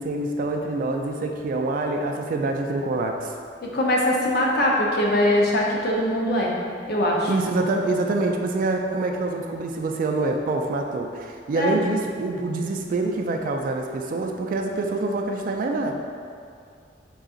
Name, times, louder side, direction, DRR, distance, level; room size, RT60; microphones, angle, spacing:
voice 1, 0.0-3.3 7.3-15.9, right 2 dB, 50° right, 3 dB, 0.3 m, -26 dB
voice 2, 3.6-6.5 6.9-7.3 11.5-11.8, left 1 dB, 60° left, -2 dB, 0.6 m, -22 dB
3.8 x 2.4 x 3.7 m, 2.2 s
head